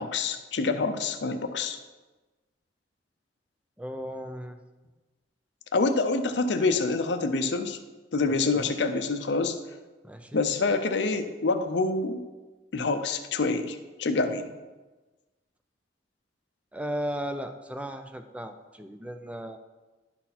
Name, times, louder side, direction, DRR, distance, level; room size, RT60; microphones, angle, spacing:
voice 1, 0.0-1.8 5.7-7.8 8.1-9.6 10.3-12.2 12.7-14.5, left 3 dB, 75° left, 8 dB, 0.6 m, -26 dB
voice 2, 3.8-4.6 8.3-8.7 10.0-10.4 16.7-19.6, equal, 5° right, 7 dB, 0.4 m, -36 dB
11.0 x 4.1 x 4.2 m, 1.2 s
head